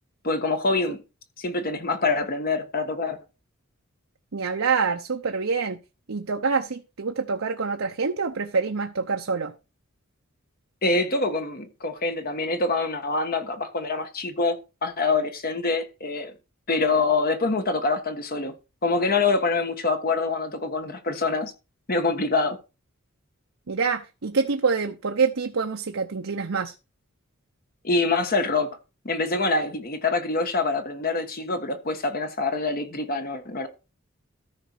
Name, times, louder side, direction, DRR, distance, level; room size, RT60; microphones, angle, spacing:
voice 1, 0.2-1.0 1.4-3.2 10.8-14.6 14.8-16.3 16.7-18.5 18.8-21.5 21.9-22.6 27.8-28.7 29.0-33.7, left 3 dB, 45° left, 1.3 m, -25 dB
voice 2, 4.3-5.8 6.1-9.5 23.7-26.7, right 5 dB, 65° right, 0.8 m, -26 dB
13.5 x 5.3 x 4.6 m
head